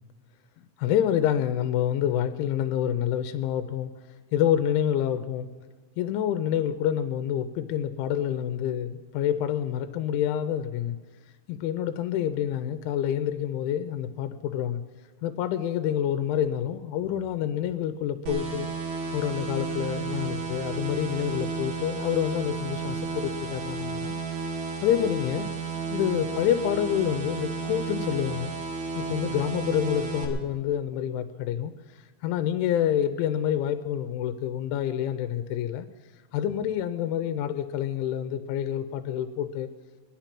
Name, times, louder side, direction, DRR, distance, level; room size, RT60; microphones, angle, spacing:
voice 1, 0.8-3.9 4.3-5.5 6.0-11.0 11.5-14.8 15.2-18.7 19.1-24.2 24.8-25.5 25.9-28.6 29.0-35.9 36.3-39.7, left 10 dB, 90° left, 10 dB, 3.0 m, -27 dB
sound 1, 18.3-30.3, right 4 dB, 70° right, 4.1 m, -33 dB
22.0 x 10.5 x 5.9 m, 1.4 s
omnidirectional pair, 5.3 m